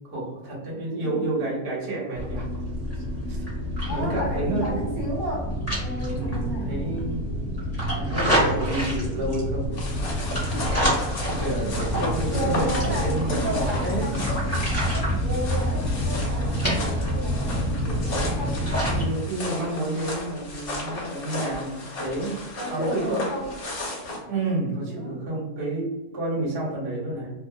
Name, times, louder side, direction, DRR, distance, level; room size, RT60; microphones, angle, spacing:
voice 1, 0.1-2.5 3.3-3.4 3.9-4.8 6.1-7.2 7.9-9.7 10.0-10.2 11.2-14.1 18.9-22.4 22.7-23.3 24.3-27.3, right 2 dB, 45° right, -5 dB, 0.9 m, -30 dB
voice 2, 0.9-1.4 1.9-2.1 3.8-7.1 10.5-11.0 12.2-14.2 15.2-18.6 22.6-23.5 24.9-25.2, right 1 dB, 70° right, -3 dB, 1.2 m, -33 dB
Gentle Water Laps on Georgian Bay, 2.1-19.0, equal, 15° left, 0.7 m, -27 dB
sound 1, 9.7-24.2, left 2 dB, 50° left, 0.8 m, -34 dB
2.3 x 2.3 x 2.2 m, 1.0 s
omnidirectional pair, 1.6 m